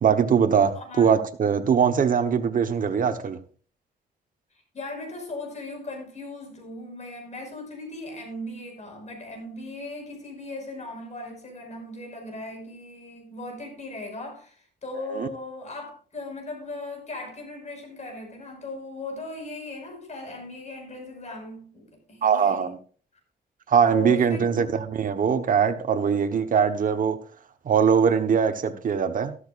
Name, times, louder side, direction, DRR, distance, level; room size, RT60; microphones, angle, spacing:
voice 1, 0.0-3.4 15.1-15.3 22.2-22.8 23.7-27.2 27.6-29.4, right 7 dB, 50° right, 1.2 m, -22 dB
voice 2, 0.7-1.1 4.7-22.7 23.9-24.5, left 2 dB, 40° left, 5.6 m, -38 dB
13.0 x 13.0 x 2.5 m
cardioid pair, 100°, 18 cm